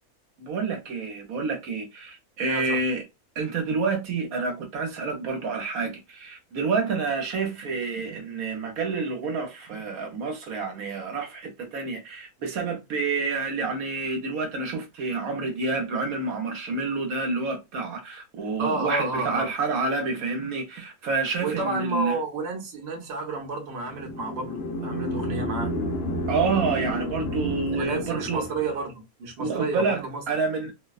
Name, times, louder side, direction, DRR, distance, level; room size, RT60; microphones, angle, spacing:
voice 1, 0.4-3.0 3.4-22.2 26.3-28.5 29.4-30.7, right 4 dB, 75° right, 1.1 m, -28 dB
voice 2, 2.5-2.8 18.6-19.5 21.4-25.7 27.8-28.9 29.2-30.2, right 3 dB, 50° right, 0.9 m, -31 dB
sound 1, 23.9-28.8, equal, 60° left, 0.7 m, -31 dB
2.7 x 2.1 x 2.3 m
omnidirectional pair, 1.6 m